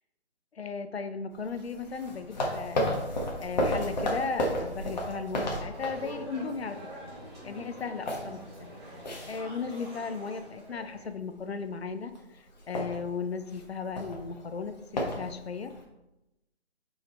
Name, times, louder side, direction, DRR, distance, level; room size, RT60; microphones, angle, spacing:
voice 1, 0.5-6.8 7.4-8.7 9.3-15.7, left 5 dB, 65° left, 10 dB, 0.8 m, -36 dB
sound 1, 1.3-6.6 6.9-7.1 7.5-10.2 10.5-10.9 11.4-11.8 12.1-12.2 12.5-15.8, left 1 dB, 40° left, 1.5 m, -33 dB
sound 2, 5.7-11.1, right 1 dB, 20° right, 2.4 m, -45 dB
5.8 x 5.0 x 4.3 m, 0.93 s
figure-of-eight pair, 165°, 33 cm